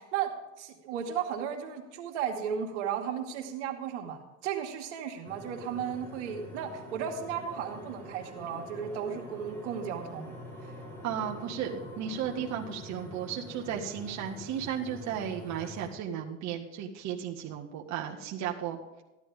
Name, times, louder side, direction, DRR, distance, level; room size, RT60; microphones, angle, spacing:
voice 1, 0.0-10.3 10.6-10.7, right 8 dB, 85° right, 2 dB, 2.3 m, -35 dB
sound 1, 5.2-15.9, equal, 5° left, 5.4 m, -45 dB
voice 2, 11.0-19.0, right 8 dB, 50° right, 0 dB, 1.7 m, -35 dB
15.0 x 11.5 x 3.6 m, 1.0 s
supercardioid pair, 110°, 35 cm